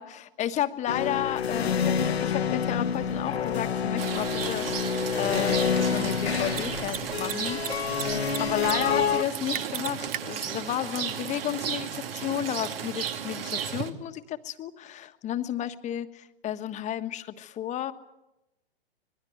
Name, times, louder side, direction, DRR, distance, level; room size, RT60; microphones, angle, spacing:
voice 1, 0.0-7.9 8.4-17.9, left 11 dB, 25° left, 10 dB, 1.4 m, -32 dB
sound 1, 0.9-9.2, left 7 dB, 75° left, 1.4 m, -28 dB
Mechanisms, 4.0-4.1 6.4-6.6 6.9-7.0 7.2-8.0 8.3-8.7 9.0-9.1 9.5-10.2, right 12 dB, 25° right, 1.0 m, -33 dB
Rain, 4.0-13.9, right 8 dB, 65° right, 2.4 m, -34 dB
26.0 x 21.5 x 7.9 m, 0.89 s
figure-of-eight pair, 115°, 31 cm